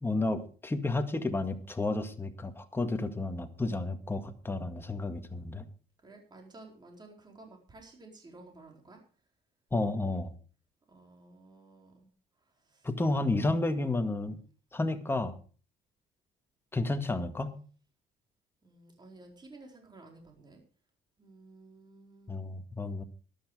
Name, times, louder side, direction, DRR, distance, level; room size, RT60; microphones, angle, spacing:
voice 1, 0.0-5.7 9.7-10.3 12.8-14.4 14.7-15.4 16.7-17.5 22.3-23.0, left 2 dB, 15° left, 7 dB, 1.9 m, -31 dB
voice 2, 6.0-9.0 10.9-12.1 12.6-12.9 18.6-20.6 21.2-22.4, right 2 dB, 25° right, 2 dB, 4.5 m, -53 dB
13.0 x 12.0 x 5.0 m, 0.39 s
cardioid pair, 110°, 17 cm